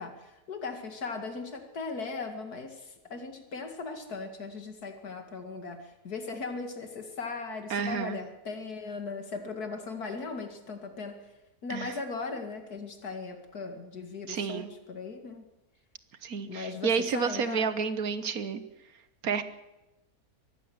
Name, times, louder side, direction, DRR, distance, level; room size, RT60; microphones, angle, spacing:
voice 1, 0.0-11.2 11.6-15.4 16.5-17.7, left 4 dB, 70° left, 6 dB, 2.8 m, -38 dB
voice 2, 7.7-8.2 11.7-12.0 14.3-14.7 16.2-18.6 19.2-19.4, right 6 dB, 65° right, 12 dB, 1.6 m, -30 dB
23.0 x 14.5 x 8.0 m, 0.97 s
omnidirectional pair, 1.7 m